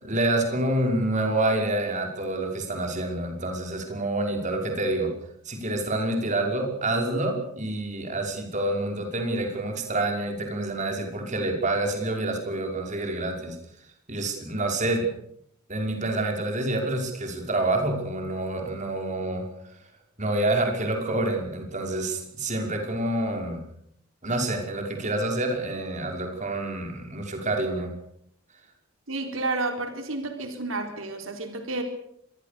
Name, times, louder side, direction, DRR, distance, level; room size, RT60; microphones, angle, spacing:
voice 1, 0.0-5.1 5.5-13.6 14.1-15.1 15.7-19.4 20.2-23.6 24.2-27.9, right 2 dB, 40° right, 3 dB, 5.5 m, -27 dB
voice 2, 29.1-31.8, right 2 dB, 90° right, 5 dB, 4.0 m, -30 dB
25.5 x 21.0 x 6.8 m, 0.72 s
head